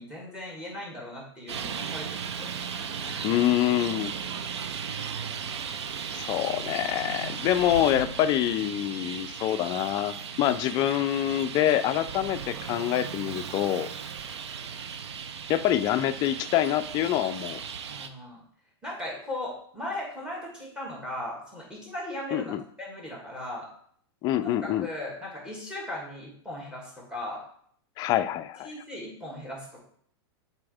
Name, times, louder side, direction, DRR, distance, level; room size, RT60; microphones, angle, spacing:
voice 1, 0.0-2.5 3.0-3.3 4.5-4.7 17.9-18.4 18.8-22.5 22.8-23.7 24.8-27.4 28.6-29.8, left 1 dB, 5° right, -2 dB, 2.3 m, -38 dB
Traffic noise roadway noise, 1.5-18.1, right 7 dB, 85° right, 0.6 m, -36 dB
voice 2, 3.0-4.1 6.1-13.9 15.5-17.6 22.3-22.6 24.2-24.9 28.0-28.7, left 12 dB, 30° left, 11 dB, 0.4 m, -26 dB
7.0 x 4.3 x 3.4 m, 0.63 s
hypercardioid pair, 130°, 14 cm